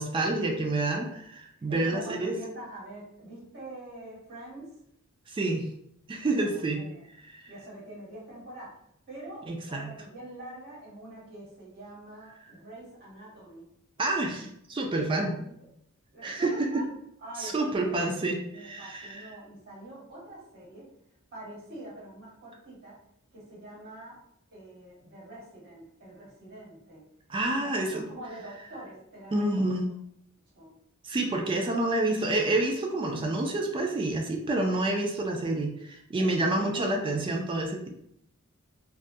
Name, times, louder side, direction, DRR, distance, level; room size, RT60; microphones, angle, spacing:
voice 1, 0.0-2.3 5.3-5.7 6.1-6.8 7.3-7.5 9.5-9.9 14.0-15.4 16.2-16.8 17.4-19.2 27.3-28.1 29.3-29.9 31.0-37.9, right 2 dB, 25° right, 2 dB, 0.3 m, -28 dB
voice 2, 1.7-4.8 6.2-7.0 7.5-8.7 9.1-13.7 15.1-15.5 16.1-16.9 17.2-20.9 21.3-23.0 23.3-24.2 24.5-27.0 27.5-29.8 30.5-30.7 36.2-37.3, right 1 dB, 50° right, -6 dB, 1.2 m, -45 dB
2.3 x 2.1 x 2.6 m, 0.74 s
head